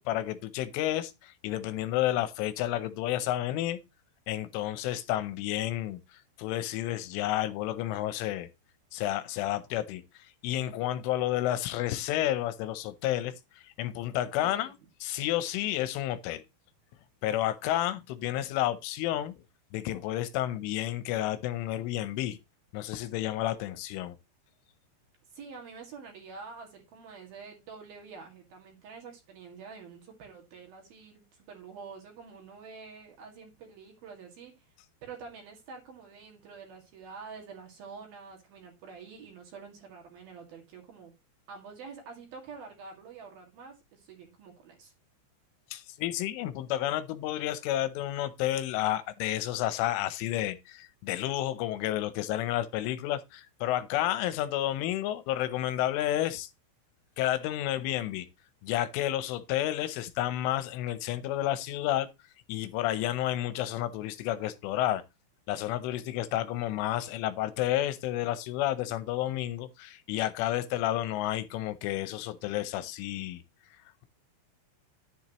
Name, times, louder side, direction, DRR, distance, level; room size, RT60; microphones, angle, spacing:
voice 1, 0.0-3.8 4.3-8.5 8.9-14.7 15.0-16.4 17.2-19.3 19.7-22.4 22.7-24.2 45.7-56.5 57.2-58.3 58.6-62.1 62.5-65.0 65.5-73.4, left 13 dB, 80° left, 3.3 m, -31 dB
voice 2, 14.4-14.8 25.3-34.7 35.0-41.1 41.5-44.9, right 5 dB, 55° right, 3.6 m, -47 dB
10.5 x 10.0 x 3.0 m
omnidirectional pair, 5.7 m